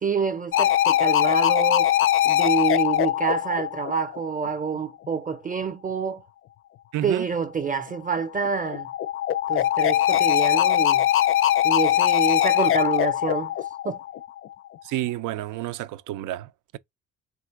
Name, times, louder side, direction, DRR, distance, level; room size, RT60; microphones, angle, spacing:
voice 1, 0.0-1.9 2.2-6.2 7.0-8.9 9.5-11.0 11.6-13.5 13.8-14.0, right 5 dB, 25° right, 0.6 m, -27 dB
sound 1, 0.5-4.5 8.1-14.5, left 12 dB, 45° left, 0.4 m, -22 dB
voice 2, 6.9-7.3 14.8-16.8, right 14 dB, 90° right, 0.5 m, -30 dB
3.7 x 2.5 x 4.5 m
cardioid pair, 90°, 30 cm